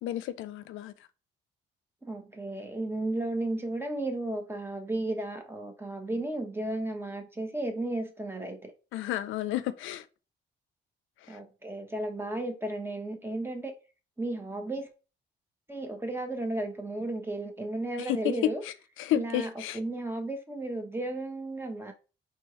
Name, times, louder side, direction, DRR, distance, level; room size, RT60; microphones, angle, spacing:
voice 1, 0.0-0.9 8.9-10.1 11.2-11.4 18.0-19.8, left 12 dB, 85° left, 0.4 m, -31 dB
voice 2, 2.0-8.7 11.3-13.7 14.2-14.9 15.7-18.6 19.1-21.9, right 2 dB, 10° right, 1.0 m, -34 dB
4.5 x 3.5 x 3.1 m
cardioid pair, 90°, 20 cm